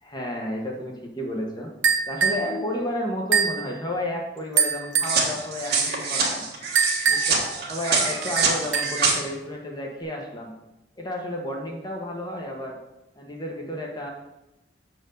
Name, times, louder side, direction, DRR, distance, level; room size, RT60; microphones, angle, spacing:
voice 1, 0.0-1.7 2.1-6.5 7.1-10.5 11.0-12.8 13.1-14.1, left 1 dB, 25° left, 0 dB, 1.2 m, -31 dB
sound 1, 1.8-2.5 3.3-3.6 4.6-5.2 6.8-7.5 8.4-9.1, right 6 dB, 80° right, 1.0 m, -23 dB
sound 2, 5.0-9.1, right 4 dB, 60° right, 1.8 m, -25 dB
6.7 x 4.6 x 6.5 m, 0.94 s
head